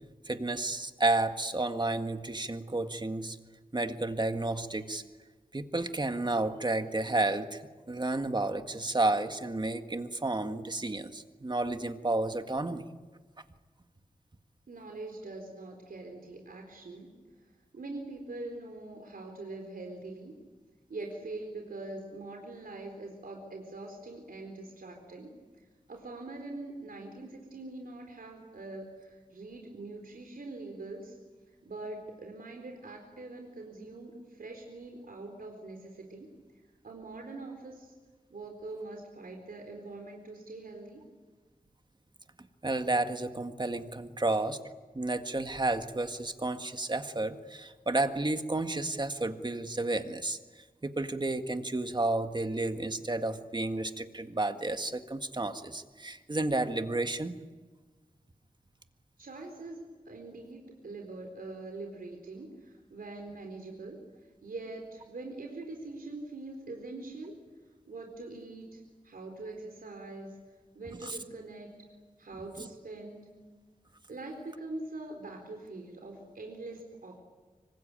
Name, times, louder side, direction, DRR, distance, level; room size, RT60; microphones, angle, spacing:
voice 1, 0.3-3.4 3.7-5.0 5.5-12.8 42.6-44.6 44.9-50.4 50.8-57.3 71.0-71.2 72.6-72.7, right 2 dB, 30° right, 7 dB, 1.9 m, -31 dB
voice 2, 14.7-17.1 17.7-20.4 20.9-31.2 31.6-36.3 36.8-37.9 38.3-41.1 44.3-44.4 59.2-64.0 64.4-67.3 67.9-70.4 70.7-71.7 72.2-73.3 74.1-77.2, right 2 dB, 90° right, 2 dB, 4.1 m, -43 dB
26.0 x 25.0 x 9.1 m, 1.3 s
wide cardioid pair, 90°, 15 cm